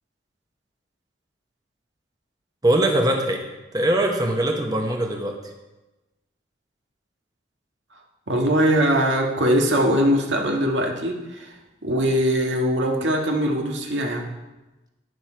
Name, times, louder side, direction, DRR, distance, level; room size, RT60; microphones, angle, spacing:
voice 1, 2.6-3.4 3.7-5.4, right 1 dB, 20° right, 2 dB, 1.0 m, -21 dB
voice 2, 8.3-11.6 11.8-14.3, equal, 90° right, 1 dB, 1.7 m, -21 dB
11.0 x 9.8 x 4.6 m, 1.1 s
head